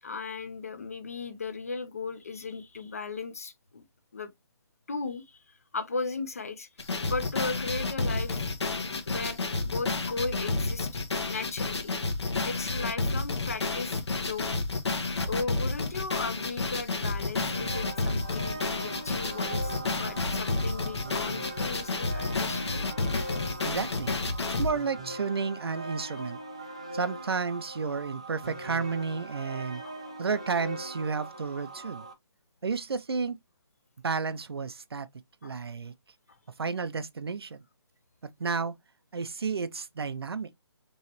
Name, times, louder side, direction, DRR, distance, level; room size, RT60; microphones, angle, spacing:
voice 1, 0.0-3.8 4.1-4.3 4.9-5.4 5.7-6.7 7.0-8.4 9.1-10.9 11.3-12.0 12.4-14.5 15.2-22.8 29.8-30.0 35.4-35.5, left 4 dB, 35° left, 0.6 m, -36 dB
sound 1, 6.8-24.7, left 3 dB, 75° left, 1.4 m, -30 dB
sound 2, 17.4-32.1, right 2 dB, 15° right, 0.4 m, -41 dB
voice 2, 23.6-24.1 24.6-26.4 26.9-29.8 30.2-32.1 32.6-33.4 34.0-35.1 35.4-35.9 36.6-37.6 38.4-38.8 39.1-40.6, right 5 dB, 65° right, 0.5 m, -31 dB
5.6 x 3.1 x 2.9 m
hypercardioid pair, 180°, 14 cm